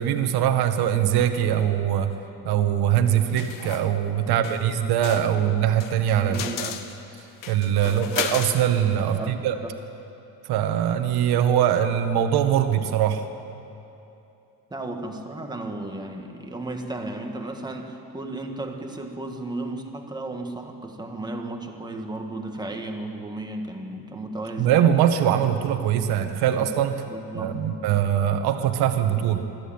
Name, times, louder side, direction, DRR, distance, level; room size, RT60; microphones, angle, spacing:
voice 1, 0.0-2.1 2.4-6.7 7.5-9.5 10.4-13.2 24.6-27.0 27.3-29.5, right 10 dB, 65° right, 7 dB, 1.5 m, -22 dB
sound 1, 3.4-3.9 4.4-4.6 5.0-8.7, left 9 dB, 50° left, 1.2 m, -33 dB
voice 2, 4.2-4.8 6.3-6.7 7.8-8.1 9.0-9.7 14.7-24.8 26.5-26.7 27.1-27.6, right 2 dB, 10° right, 3 dB, 1.5 m, -34 dB
23.5 x 14.0 x 8.9 m, 2.8 s
cardioid pair, 165°, 41 cm